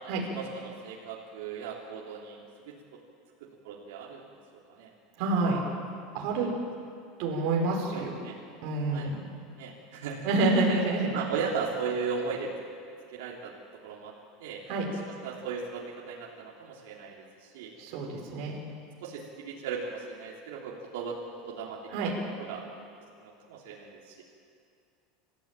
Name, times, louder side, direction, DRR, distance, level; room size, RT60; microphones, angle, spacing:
voice 1, 0.3-2.4 3.6-4.3 4.7-4.9 6.3-6.5 7.9-8.3 8.9-9.1 9.6-10.3 11.1-12.5 13.1-13.5 13.8-14.1 14.4-17.7 19.0-21.2 21.5-22.1 22.4-22.7 23.2-24.2, right 5 dB, 75° right, -3 dB, 3.4 m, -37 dB
voice 2, 5.2-5.6 6.1-6.5 7.2-8.1 8.6-9.2 10.2-11.2 14.7-14.9 17.8-18.6 21.9-22.1, right 3 dB, 50° right, -1 dB, 5.1 m, -27 dB
27.5 x 14.5 x 9.1 m, 2.4 s
supercardioid pair, 170°, 0 cm